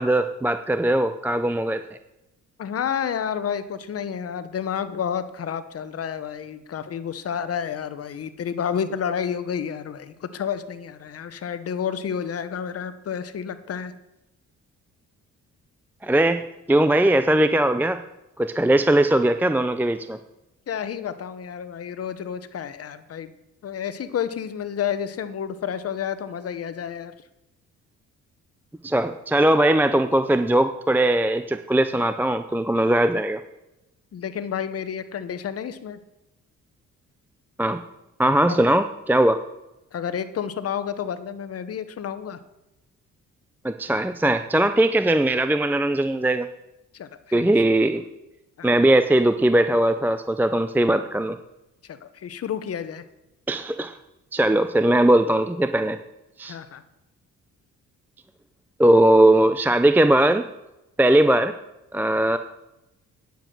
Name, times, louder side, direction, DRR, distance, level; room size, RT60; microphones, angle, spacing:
voice 1, 0.0-1.8 16.0-16.4 16.7-18.0 18.4-20.2 28.8-33.4 37.6-37.8 38.2-39.4 43.6-46.5 47.3-48.0 48.6-51.4 53.5-53.9 54.3-56.0 56.4-56.6 58.8-60.4 61.0-61.5 61.9-62.4, right 1 dB, 5° right, 10 dB, 0.5 m, -19 dB
voice 2, 2.6-13.9 20.7-23.3 23.6-27.1 34.1-36.0 38.5-38.6 39.9-42.4 46.9-47.7 48.6-48.7 51.8-53.0 56.4-56.8, left 8 dB, 50° left, 12 dB, 1.0 m, -30 dB
9.8 x 7.1 x 7.6 m, 0.94 s
cardioid pair, 90°, 30 cm